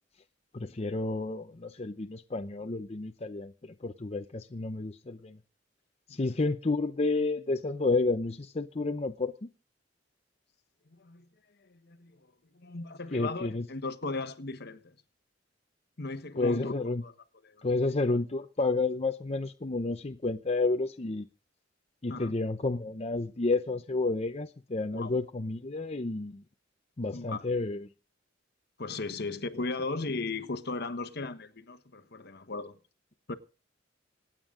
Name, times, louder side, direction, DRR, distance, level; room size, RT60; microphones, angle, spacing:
voice 1, 0.5-5.4 6.1-9.3 13.1-13.7 16.4-17.0 17.6-21.3 22.0-26.4 27.0-27.9, left 3 dB, 35° left, 0.7 m, -30 dB
voice 2, 10.9-11.3 11.6-14.9 16.0-16.7 17.0-17.1 17.4-17.7 22.1-22.3 24.9-25.2 27.1-27.5 28.8-32.8 33.3-33.4, left 3 dB, 60° left, 1.2 m, -37 dB
26.5 x 9.0 x 3.8 m
head